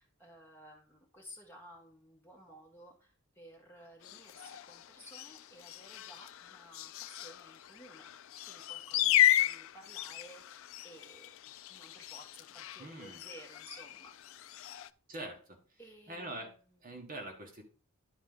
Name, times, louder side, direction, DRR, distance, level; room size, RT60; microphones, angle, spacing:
voice 1, 0.0-8.1 8.4-11.3 11.7-14.6 15.8-17.0, equal, 10° left, -1 dB, 1.5 m, -55 dB
sound 1, 4.0-14.9, left 13 dB, 65° left, 0.3 m, -34 dB
voice 2, 12.8-13.2 15.1-15.6 16.1-16.5 16.8-17.6, right 1 dB, 40° right, 2 dB, 1.3 m, -43 dB
11.0 x 4.0 x 3.8 m, 0.39 s
head